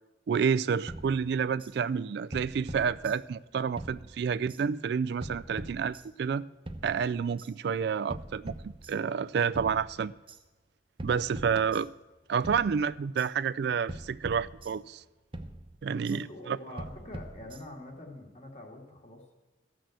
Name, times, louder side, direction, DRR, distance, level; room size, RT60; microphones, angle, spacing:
voice 1, 0.3-6.4 6.8-10.1 11.0-11.9 12.3-15.0 15.8-16.6, right 6 dB, 60° right, 0.3 m, -29 dB
sound 1, 0.9-1.7 2.3-3.5 3.8-4.6 5.2-6.3 6.7-7.5 8.1-9.3 9.6-10.4 11.0-12.2 12.4-13.3 13.9-15.1 15.3-16.2 16.8-17.9, right 1 dB, 30° right, 0.8 m, -43 dB
voice 2, 15.9-19.3, left 2 dB, 40° left, 2.2 m, -45 dB
14.0 x 6.2 x 7.8 m
head